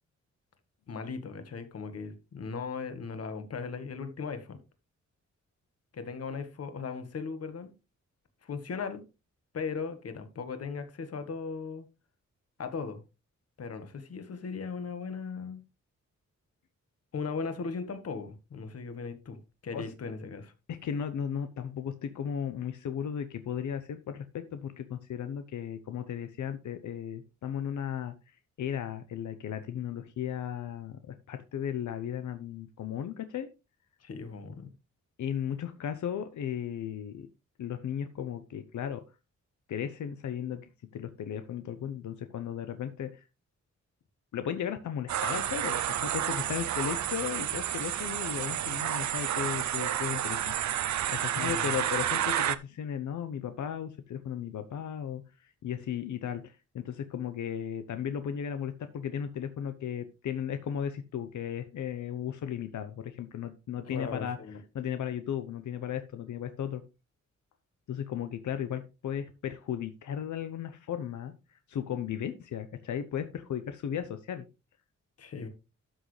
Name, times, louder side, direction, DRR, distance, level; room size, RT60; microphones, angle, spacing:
voice 1, 0.9-4.6 5.9-7.7 8.4-9.0 9.5-11.8 12.6-13.0 13.6-15.6 17.1-19.4 19.6-20.5 34.0-34.7 51.2-51.7 63.9-64.6 75.2-75.5, left 5 dB, 55° left, 9 dB, 1.5 m, -38 dB
voice 2, 20.7-28.1 28.6-33.5 35.2-37.3 37.6-39.0 39.7-43.2 44.3-50.5 51.1-64.4 64.7-66.8 67.9-74.4, left 9 dB, 90° left, 10 dB, 0.8 m, -35 dB
sound 1, 45.1-52.6, right 11 dB, 70° right, 0.6 m, -30 dB
12.5 x 6.4 x 3.2 m, 0.28 s
wide cardioid pair, 130°, 29 cm